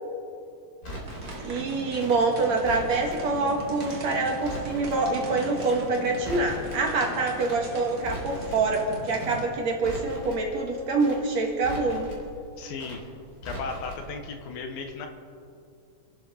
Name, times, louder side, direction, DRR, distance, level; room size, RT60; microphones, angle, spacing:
Crackle, 0.8-1.4 2.0-3.2 3.8-4.0 4.3-5.0 5.6-5.8 6.1-6.8 7.4-7.6 7.9-8.6 9.2-9.4 9.7-10.4 11.0-11.2 11.5-12.2 12.8-13.0 13.3-14.0 14.3-14.4, equal, 25° left, 3.7 m, -39 dB
sound 1, 1.0-9.5, right 2 dB, 30° right, 1.7 m, -39 dB
voice 1, 1.4-12.1, right 3 dB, 55° right, 1 dB, 2.4 m, -26 dB
voice 2, 12.6-13.1 13.4-15.1, left 4 dB, 80° left, 5 dB, 3.2 m, -35 dB
28.5 x 12.0 x 4.2 m, 2.5 s
omnidirectional pair, 4.2 m